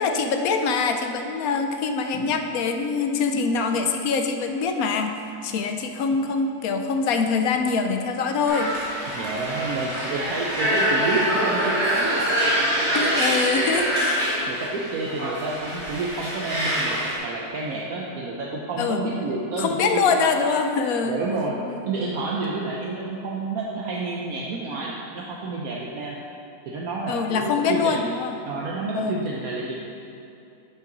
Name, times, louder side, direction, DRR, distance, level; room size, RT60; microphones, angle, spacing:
voice 1, 0.0-8.7 12.9-13.9 18.8-19.0 19.6-21.2 21.7-21.8 27.1-28.3 28.9-29.2, left 5 dB, 70° left, 6 dB, 1.0 m, -24 dB
sound 1, 8.5-17.2, equal, 45° right, 2.4 m, -25 dB
voice 2, 9.1-14.1 14.5-17.0 17.2-19.9 20.2-20.4 21.0-21.6 21.9-26.2 26.7-28.1 28.4-29.7, right 3 dB, 70° right, -3 dB, 1.2 m, -30 dB
10.5 x 5.9 x 3.9 m, 2.8 s
omnidirectional pair, 1.7 m